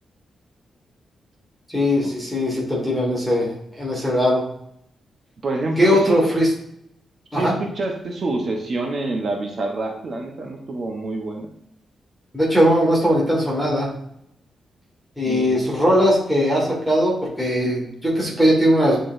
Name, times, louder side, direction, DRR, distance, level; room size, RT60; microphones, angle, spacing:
voice 1, 1.7-4.4 5.8-6.5 7.3-7.5 12.3-13.9 15.2-19.0, equal, ahead, -5 dB, 1.8 m, -19 dB
voice 2, 5.4-6.2 7.3-11.5 15.2-15.6, right 2 dB, 40° right, 1 dB, 0.9 m, -26 dB
9.6 x 4.1 x 2.6 m, 0.73 s
wide cardioid pair, 170°, 0 cm